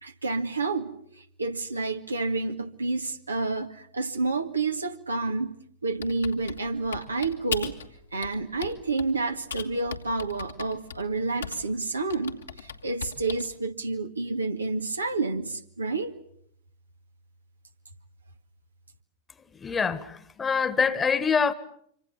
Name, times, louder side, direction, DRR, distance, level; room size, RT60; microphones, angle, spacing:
voice 1, 0.0-5.5 5.8-7.7 8.1-16.1, right 3 dB, 80° right, 2.0 m, -29 dB
Typing, 6.0-7.9 8.2-9.1 9.5-11.7 12.1-13.5, left 7 dB, 70° left, 2.3 m, -37 dB
voice 2, 19.6-21.5, left 6 dB, 20° left, 1.7 m, -25 dB
26.5 x 25.5 x 7.3 m
figure-of-eight pair, 90°, 0 cm